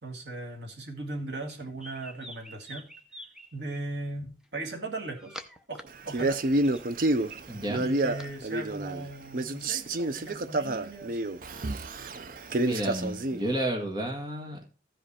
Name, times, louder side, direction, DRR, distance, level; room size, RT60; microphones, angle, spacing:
voice 1, 0.0-2.9 3.5-5.4 5.7-6.4 7.8-11.4, right 2 dB, 80° right, 2 dB, 1.9 m, -38 dB
sound 1, 1.5-3.8 4.7-5.8 6.2-8.3, equal, 5° right, 0.6 m, -47 dB
Male speech man speaking, 6.1-9.1 9.3-13.5, right 2 dB, 50° right, 0.5 m, -29 dB
voice 2, 7.5-7.8 12.6-14.6, right 1 dB, 25° right, 1 dB, 1.7 m, -31 dB
15.0 x 5.2 x 4.2 m, 0.37 s
head